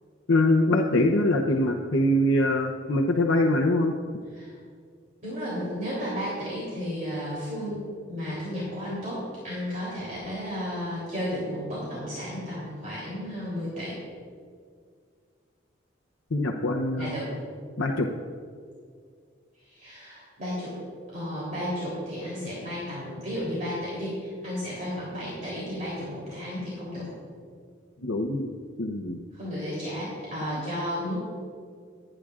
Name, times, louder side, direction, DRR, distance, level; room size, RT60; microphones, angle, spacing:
voice 1, 0.3-4.0 16.3-17.2 17.8-18.1 28.0-28.5 28.8-29.2, left 1 dB, 90° left, 0 dB, 0.8 m, -23 dB
voice 2, 5.2-7.8 8.1-14.0 16.9-17.3 19.7-20.8 21.1-27.1 29.3-31.2, equal, 40° right, -7 dB, 3.4 m, -33 dB
26.0 x 10.0 x 2.5 m, 2.1 s
head